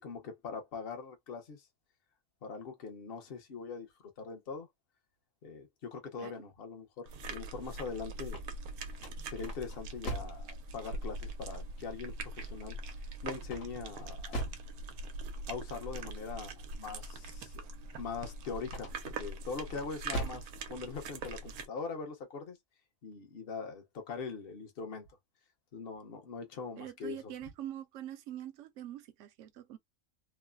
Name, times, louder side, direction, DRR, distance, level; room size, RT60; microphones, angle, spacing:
voice 1, 0.0-1.7 2.4-3.9 4.2-4.7 5.4-8.4 9.2-12.8 13.2-14.4 15.5-17.6 18.0-22.6 23.0-25.1 25.7-27.3, left 5 dB, 50° left, 0.9 m, -42 dB
sound 1, 7.1-21.7, right 2 dB, 90° right, 1.1 m, -42 dB
sound 2, 8.3-10.5 13.4-14.7 18.6-19.2 19.7-20.5, right 1 dB, 65° left, 1.4 m, -40 dB
voice 2, 26.8-29.8, right 11 dB, 70° right, 0.8 m, -44 dB
3.1 x 2.1 x 2.2 m
omnidirectional pair, 1.5 m